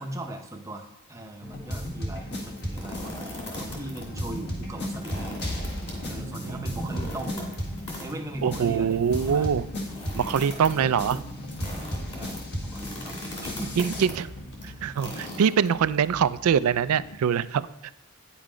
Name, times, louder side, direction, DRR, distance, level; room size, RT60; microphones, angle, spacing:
voice 1, 0.0-5.8 6.1-7.4 7.9-9.6 10.7-11.2 12.1-14.1 14.6-14.8, right 1 dB, 15° right, 3 dB, 0.7 m, -40 dB
sound 1, 1.4-15.1, equal, 50° left, 1.6 m, -35 dB
sound 2, 2.6-4.0 4.3-4.4 4.9-16.1, left 1 dB, 25° left, 2.4 m, -41 dB
sound 3, 2.9-17.6, left 2 dB, 80° left, 0.8 m, -48 dB
voice 2, 8.4-9.7 10.1-11.2 13.8-14.1 14.8-17.7, right 7 dB, 90° right, 16 dB, 0.4 m, -23 dB
9.2 x 5.6 x 5.0 m, 0.85 s
head